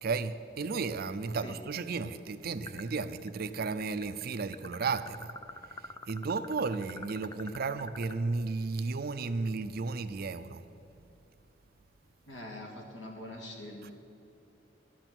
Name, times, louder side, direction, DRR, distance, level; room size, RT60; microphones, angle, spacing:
voice 1, 0.0-5.3 6.1-10.6, right 4 dB, 55° right, 0.5 m, -34 dB
sound 1, 2.7-3.3 3.6-8.2, left 3 dB, 20° left, 0.4 m, -45 dB
voice 2, 12.3-13.9, left 1 dB, 75° left, 2.0 m, -44 dB
12.0 x 6.0 x 9.0 m
head